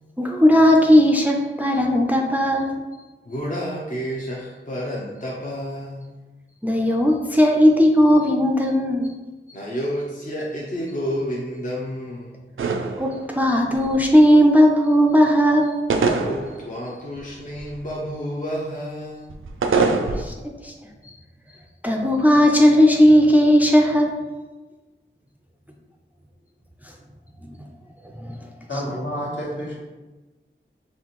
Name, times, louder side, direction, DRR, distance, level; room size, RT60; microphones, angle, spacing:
voice 1, 0.2-2.8 6.6-9.1 13.0-15.8 20.1-20.3 20.6-20.7 21.8-24.1 28.2-28.4, equal, 10° right, 1 dB, 0.4 m, -16 dB
voice 2, 3.3-6.1 9.5-12.4 16.3-19.3, equal, 40° left, -4 dB, 0.6 m, -30 dB
sound 1, 12.6-13.5 13.7-14.1 15.9-16.8 17.2-17.8 19.3-20.2, right 4 dB, 75° right, 0.4 m, -23 dB
voice 3, 28.7-29.8, equal, 65° left, -5 dB, 1.3 m, -29 dB
4.2 x 3.2 x 3.0 m, 1.2 s
wide cardioid pair, 60°, 21 cm